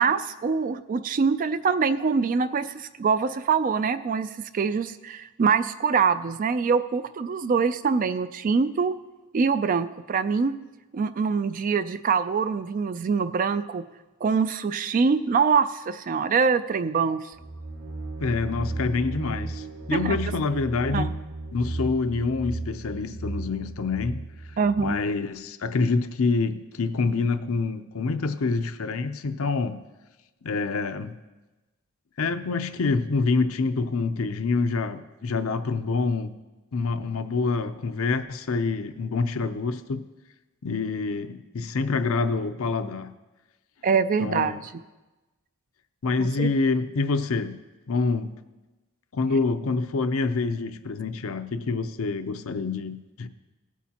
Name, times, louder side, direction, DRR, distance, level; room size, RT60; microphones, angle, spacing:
voice 1, 0.0-9.0 9.3-10.6 10.9-13.8 14.2-17.2 19.9-20.2 20.9-21.1 24.6-25.0 43.8-44.6 46.2-46.5, right 5 dB, 35° right, 12 dB, 0.3 m, -24 dB
sound 1, 17.3-25.0, right 2 dB, 80° right, 2.2 m, -35 dB
voice 2, 18.2-21.1 21.5-24.2 24.8-29.8 30.4-31.2 32.2-36.4 36.7-40.0 40.6-43.1 44.2-44.6 46.0-47.6 47.9-48.4 49.1-53.3, left 4 dB, 65° left, 10 dB, 0.6 m, -26 dB
17.0 x 8.4 x 2.9 m, 1.1 s
head